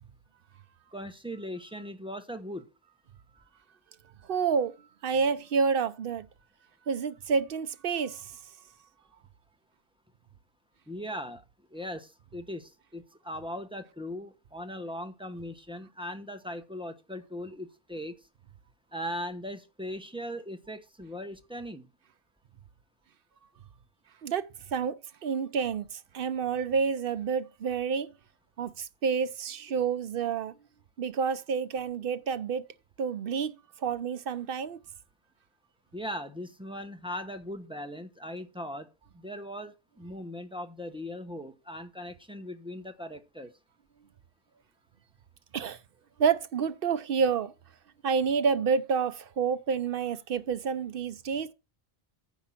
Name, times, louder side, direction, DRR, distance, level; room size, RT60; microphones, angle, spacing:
voice 1, 0.9-2.7 10.9-11.4 11.7-18.1 18.9-21.9 35.9-38.9 39.1-43.5, equal, 5° right, 0.9 m, -39 dB
voice 2, 4.3-4.7 5.0-6.3 6.9-8.3 24.2-28.1 28.6-30.5 31.0-32.6 33.0-33.6 33.8-34.8 45.5-45.8 46.2-47.5 48.0-51.5, right 6 dB, 60° right, 0.9 m, -29 dB
9.4 x 5.6 x 5.8 m
omnidirectional pair, 1.1 m